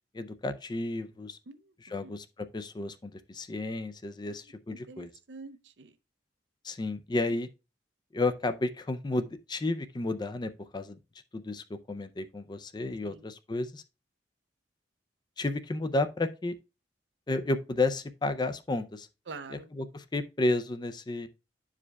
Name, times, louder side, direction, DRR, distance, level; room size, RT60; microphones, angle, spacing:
voice 1, 0.1-1.4 1.9-5.1 6.6-7.5 8.1-11.0 11.3-13.8 15.4-16.6 17.3-19.1 19.7-21.3, left 2 dB, 25° left, 0.4 m, -32 dB
voice 2, 1.5-2.1 4.3-4.5 4.9-5.9 13.0-13.2 19.3-19.7, right 4 dB, 75° right, 0.6 m, -47 dB
11.0 x 4.9 x 2.3 m
head